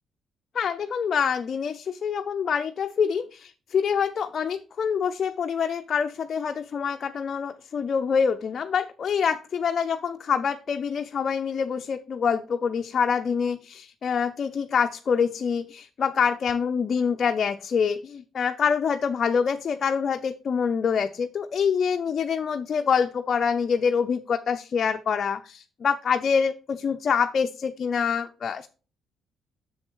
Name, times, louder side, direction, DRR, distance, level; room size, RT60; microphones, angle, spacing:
voice 1, 0.5-28.7, left 6 dB, 50° left, 0.5 m, -26 dB
7.2 x 6.9 x 3.1 m
cardioid pair, 90°, 0 cm